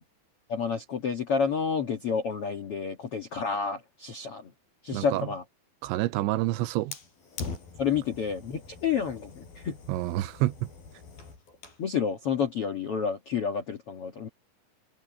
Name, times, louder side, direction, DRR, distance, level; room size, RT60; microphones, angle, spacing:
voice 1, 0.5-4.5 4.8-5.4 7.8-9.8 11.8-14.3, left 6 dB, 80° left, 1.3 m, -29 dB
voice 2, 4.9-5.3 5.8-6.9 9.9-10.5, right 16 dB, 90° right, 3.1 m, -28 dB
Fire, 6.9-11.9, left 4 dB, 50° left, 8.0 m, -43 dB
omnidirectional pair, 5.3 m